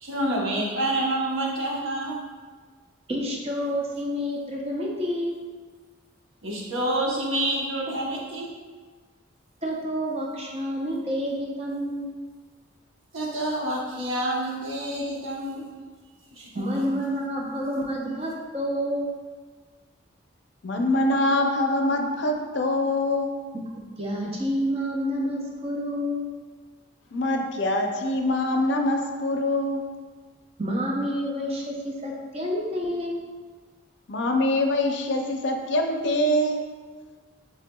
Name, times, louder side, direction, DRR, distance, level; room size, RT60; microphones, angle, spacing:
voice 1, 0.0-2.2 6.4-8.5 13.1-15.7 16.4-16.5, right 1 dB, 90° right, -3 dB, 1.0 m, -28 dB
voice 2, 3.1-5.4 9.6-12.1 16.5-19.1 24.0-26.2 30.6-33.2, equal, 30° right, -2 dB, 0.7 m, -29 dB
voice 3, 20.6-23.4 27.1-29.9 34.1-36.6, left 1 dB, 60° left, 4 dB, 0.5 m, -24 dB
6.6 x 3.4 x 2.3 m, 1.5 s
head